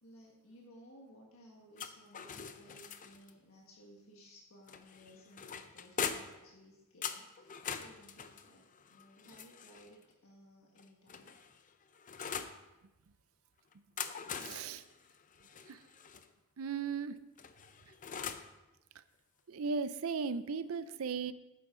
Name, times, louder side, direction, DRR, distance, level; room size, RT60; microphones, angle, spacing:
voice 1, 0.0-11.4, equal, 70° left, -2 dB, 1.7 m, -59 dB
sound 1, 1.8-3.3 4.7-6.5 7.0-9.9 10.8-12.6 13.7-16.3 17.4-18.5, left 7 dB, 40° left, 0.6 m, -43 dB
voice 2, 14.4-14.8 15.7-15.8 16.6-17.2 19.5-21.3, right 5 dB, 70° right, 14 dB, 0.5 m, -36 dB
12.0 x 9.3 x 3.8 m, 1.0 s
head